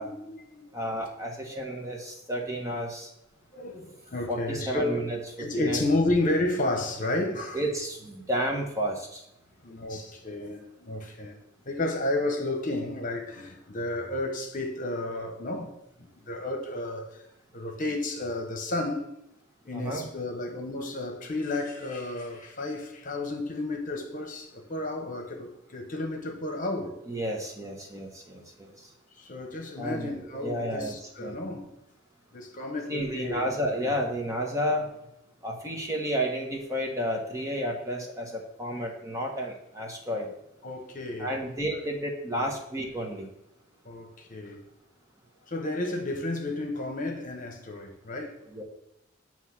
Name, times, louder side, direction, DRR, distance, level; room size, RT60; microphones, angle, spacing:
voice 1, 0.0-0.6 1.5-1.6 3.5-5.1 5.4-7.6 9.6-11.3 11.6-15.7 16.0-17.1 17.5-19.1 19.6-27.0 29.2-31.7 32.3-33.5 33.8-34.0 40.6-41.3 41.7-41.8 42.4-42.5 43.8-44.6 45.5-48.4, left 2 dB, 45° left, 1.0 m, -32 dB
voice 2, 0.7-3.1 4.3-5.8 7.5-9.2 19.7-20.0 27.1-28.7 29.8-30.9 31.2-31.4 32.9-34.9 35.4-40.3 41.2-43.3 48.5-48.6, equal, 15° right, 1.0 m, -31 dB
8.0 x 3.0 x 5.9 m
head